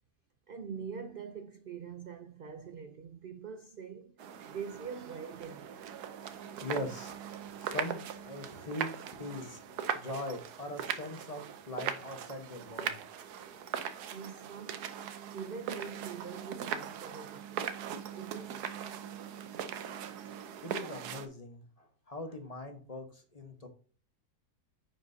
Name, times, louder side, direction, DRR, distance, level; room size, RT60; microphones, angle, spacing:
voice 1, 0.5-4.2 4.4-5.8 14.1-14.9 15.3-17.7 18.1-18.7, right 6 dB, 65° right, 0.5 m, -44 dB
sound 1, 4.2-21.3, right 8 dB, 80° right, 1.3 m, -40 dB
voice 2, 6.3-9.6 9.9-13.0 20.6-23.7, left 1 dB, 25° left, 1.2 m, -41 dB
9.7 x 5.3 x 2.7 m
omnidirectional pair, 1.7 m